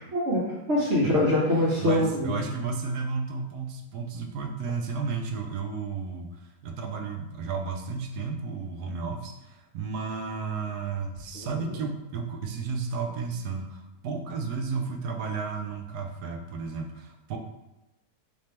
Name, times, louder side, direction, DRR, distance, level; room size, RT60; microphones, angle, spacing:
voice 1, 0.1-2.4 11.3-11.5, left 1 dB, 50° right, -6 dB, 1.0 m, -24 dB
voice 2, 1.8-17.4, right 5 dB, 85° right, 4 dB, 1.2 m, -33 dB
3.4 x 2.9 x 4.2 m, 0.94 s
omnidirectional pair, 1.7 m